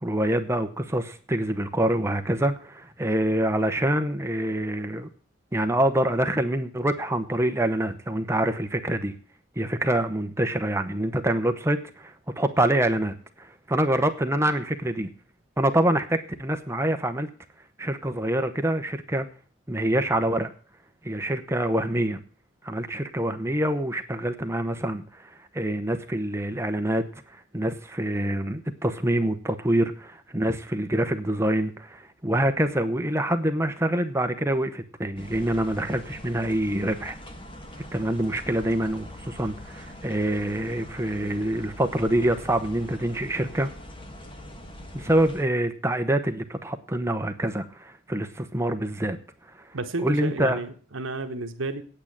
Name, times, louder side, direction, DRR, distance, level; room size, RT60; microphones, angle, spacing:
voice 1, 0.0-5.1 5.5-9.1 9.6-15.1 15.6-17.3 17.8-19.3 19.7-20.5 21.0-22.2 22.6-37.2 37.9-43.7 44.9-49.2 50.0-50.6, right 1 dB, 15° right, 8 dB, 0.8 m, -26 dB
sound 1, 35.2-45.4, left 1 dB, 25° left, 1.4 m, -43 dB
voice 2, 49.7-51.8, right 2 dB, 75° right, 5 dB, 1.1 m, -31 dB
8.9 x 8.7 x 8.5 m, 0.42 s
head